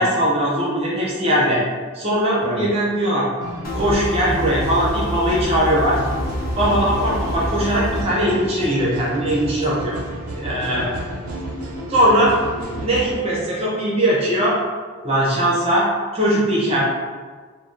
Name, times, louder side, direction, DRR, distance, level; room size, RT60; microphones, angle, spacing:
voice 1, 0.0-1.6 1.9-3.3 3.7-6.0 6.6-10.0 10.3-10.9 11.9-12.3 12.8-14.6 15.0-15.9 16.1-16.8, right 1 dB, 25° right, -5 dB, 0.5 m, -20 dB
sound 1, 3.4-13.2, right 1 dB, 80° right, 0.4 m, -32 dB
sound 2, 3.6-8.0, left 1 dB, 40° left, 0.5 m, -27 dB
voice 2, 12.5-12.9 16.7-16.8, right 1 dB, 60° left, -9 dB, 1.3 m, -30 dB
3.3 x 2.1 x 2.4 m, 1.5 s
head